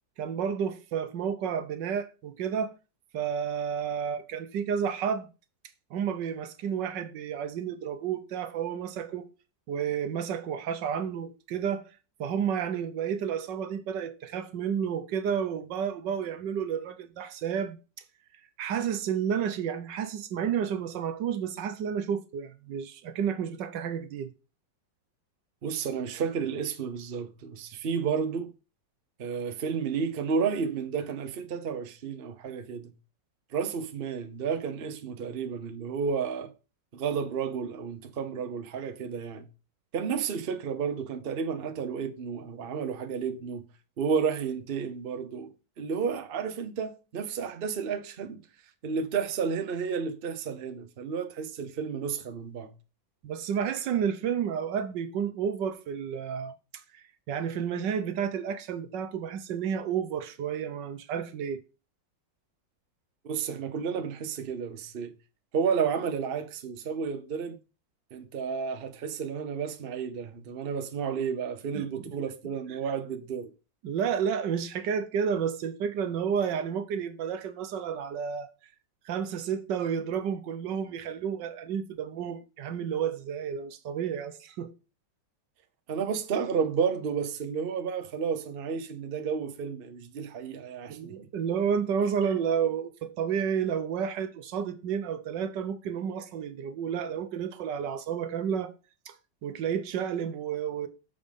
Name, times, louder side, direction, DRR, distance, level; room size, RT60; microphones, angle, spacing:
voice 1, 0.2-2.7 3.1-5.3 5.9-9.3 9.7-11.9 12.2-17.8 18.6-24.3 53.2-56.5 56.9-61.6 71.7-71.9 73.8-78.5 79.0-84.7 90.9-98.7 99.1-99.2 99.4-100.9, right 7 dB, 75° right, 1.5 m, -31 dB
voice 2, 25.6-28.5 29.2-32.9 33.5-36.5 36.9-39.5 39.9-43.6 44.0-45.5 45.8-48.4 48.8-52.7 63.2-65.1 65.5-67.6 68.1-73.5 85.9-91.2, right 6 dB, 45° right, 0.8 m, -31 dB
7.0 x 5.3 x 5.2 m
omnidirectional pair, 2.0 m